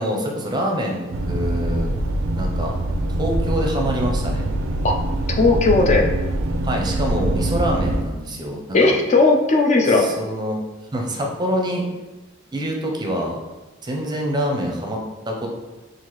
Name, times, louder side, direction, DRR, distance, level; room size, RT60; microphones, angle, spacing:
voice 1, 0.0-1.9 2.4-2.7 3.2-4.4 6.6-8.9 9.9-10.6 10.9-11.9 12.5-13.4 13.8-15.5, equal, 20° right, 0 dB, 0.6 m, -25 dB
sound 1, 1.1-8.0, right 1 dB, 85° right, 0.4 m, -23 dB
voice 2, 5.3-6.1 8.7-10.1, left 3 dB, 35° left, 2 dB, 0.5 m, -16 dB
5.7 x 2.6 x 3.0 m, 1.1 s
head